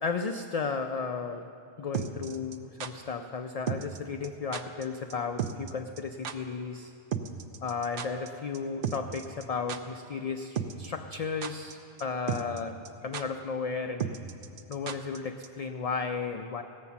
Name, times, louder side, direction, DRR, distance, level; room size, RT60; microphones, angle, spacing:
voice 1, 0.0-1.5 1.8-6.9 7.6-14.2 14.7-16.6, left 5 dB, 50° left, 6 dB, 0.4 m, -34 dB
sound 1, 1.9-2.9 3.7-4.0 4.2-4.3 4.5-4.8 5.1-5.2 5.4-5.7 6.0-6.1 6.2-6.3 7.1-8.3 8.5-8.6 8.8-9.4 9.7-9.8 10.6-10.9 11.1-11.7 12.0-12.1 12.3-12.6 12.8-12.9 13.1-13.2 14.0-15.2 15.4-15.5, right 8 dB, 65° right, 0.8 m, -33 dB
17.0 x 7.2 x 6.9 m, 2.6 s
omnidirectional pair, 1.0 m